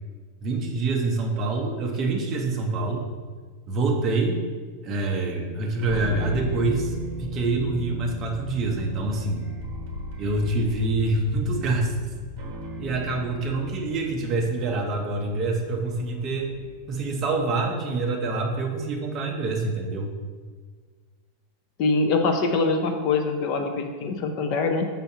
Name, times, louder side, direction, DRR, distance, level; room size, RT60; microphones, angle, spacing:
voice 1, 0.4-3.0 3.7-4.4 4.8-9.4 10.2-12.1 12.8-16.5 16.9-20.2, right 3 dB, 25° right, 1 dB, 0.7 m, -26 dB
sound 1, 5.8-17.2, equal, 40° right, 1.4 m, -37 dB
voice 2, 21.8-24.9, left 3 dB, 35° left, 5 dB, 0.5 m, -24 dB
6.9 x 5.6 x 2.7 m, 1.5 s
supercardioid pair, 175°, 0 cm